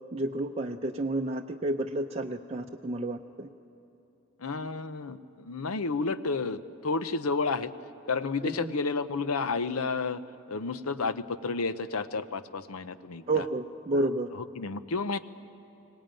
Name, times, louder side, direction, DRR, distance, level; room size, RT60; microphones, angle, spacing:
voice 1, 0.1-3.5 8.4-8.7 13.3-14.3, right 2 dB, 30° right, 2 dB, 0.6 m, -31 dB
voice 2, 4.4-7.7 8.1-10.2 10.5-13.4 13.9-14.0 14.3-15.2, left 4 dB, 85° left, 13 dB, 0.8 m, -31 dB
23.5 x 18.5 x 9.0 m, 3.0 s
head